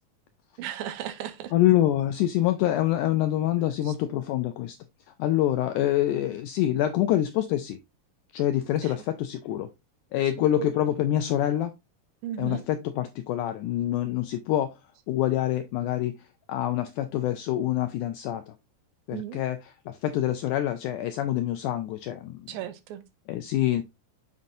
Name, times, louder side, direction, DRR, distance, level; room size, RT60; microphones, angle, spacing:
voice 1, 0.6-1.5 3.9-4.0 8.8-8.9 10.6-10.7 12.2-12.6 19.1-19.4 22.5-23.0, right 11 dB, 85° right, 2.6 m, -35 dB
voice 2, 1.5-4.8 5.1-7.8 8.3-9.7 10.1-11.7 12.4-14.8 15.1-18.5 19.1-19.6 19.9-22.5 23.3-23.8, left 13 dB, 85° left, 1.8 m, -26 dB
7.2 x 5.3 x 2.7 m
omnidirectional pair, 4.1 m